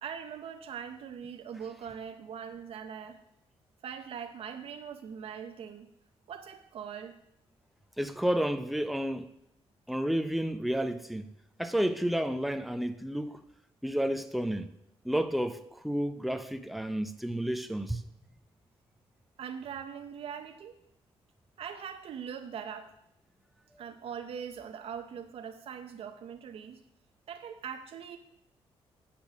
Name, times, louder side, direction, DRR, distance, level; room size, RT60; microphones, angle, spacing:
voice 1, 0.0-3.2 3.8-5.9 6.3-7.1 19.4-20.7 21.6-22.9 23.8-26.8 27.3-28.2, right 7 dB, 65° right, 0.7 m, -41 dB
voice 2, 8.0-9.3 9.9-11.2 11.6-13.4 13.8-14.7 15.0-18.0, right 1 dB, ahead, 0.5 m, -31 dB
8.8 x 5.9 x 6.1 m
cardioid pair, 120°, 11 cm